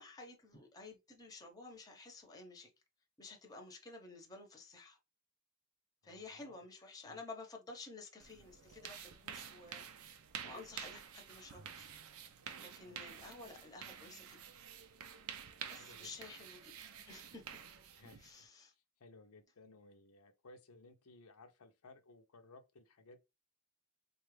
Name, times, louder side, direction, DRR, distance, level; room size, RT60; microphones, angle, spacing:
voice 1, 0.0-2.7 3.2-5.0 6.0-10.1 10.4-11.9 12.6-14.4 15.7-16.7 17.1-17.5 18.2-18.7, left 3 dB, 15° left, 0.8 m, -52 dB
voice 2, 6.0-6.6 7.1-7.2 12.8-13.0 15.7-16.1 17.9-18.5 18.7-23.2, left 2 dB, 80° left, 0.7 m, -60 dB
sound 1, 8.2-18.4, right 8 dB, 70° right, 0.5 m, -50 dB
4.1 x 2.4 x 3.2 m
head